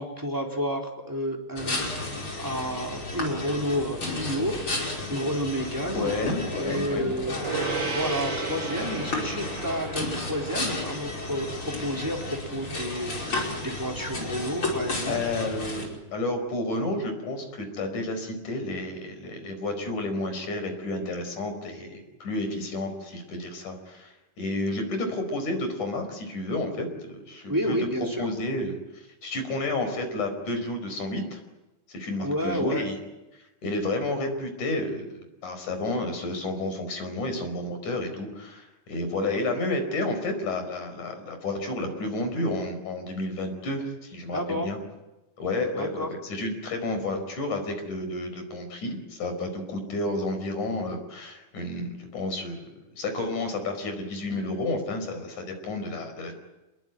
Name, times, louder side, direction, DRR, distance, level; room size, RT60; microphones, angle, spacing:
voice 1, 0.0-6.2 6.5-15.2 27.5-28.3 32.2-32.8 44.3-44.7 45.8-46.1, equal, 5° right, 1 dB, 3.6 m, -31 dB
sound 1, 1.6-15.9, left 2 dB, 40° left, 5.9 m, -33 dB
voice 2, 5.9-7.1 15.1-27.9 28.2-31.4 31.9-33.0 33.6-44.8 45.4-56.3, left 2 dB, 75° left, 7 dB, 6.2 m, -31 dB
Gong, 7.4-17.2, right 4 dB, 70° right, 9.1 m, -37 dB
27.0 x 21.5 x 9.3 m, 1.0 s
omnidirectional pair, 3.5 m